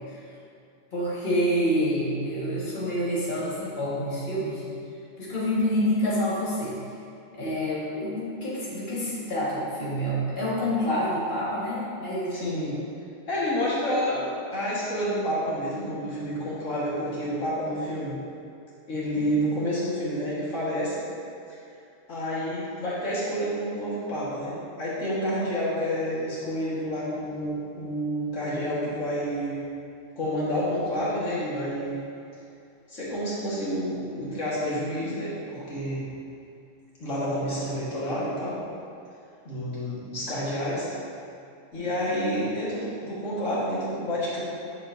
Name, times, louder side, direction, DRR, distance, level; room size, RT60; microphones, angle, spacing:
voice 1, 0.9-4.6 5.2-6.8 7.3-12.4 19.1-19.4 41.8-42.1, equal, 40° left, -9 dB, 1.8 m, -27 dB
voice 2, 12.3-12.8 13.3-14.3 14.5-18.2 18.9-21.0 22.1-29.6 30.2-32.0 32.9-36.0 37.0-38.6 39.5-40.9 41.7-44.4, equal, 80° left, -8 dB, 2.0 m, -29 dB
8.1 x 7.0 x 2.6 m, 2.5 s
omnidirectional pair, 1.3 m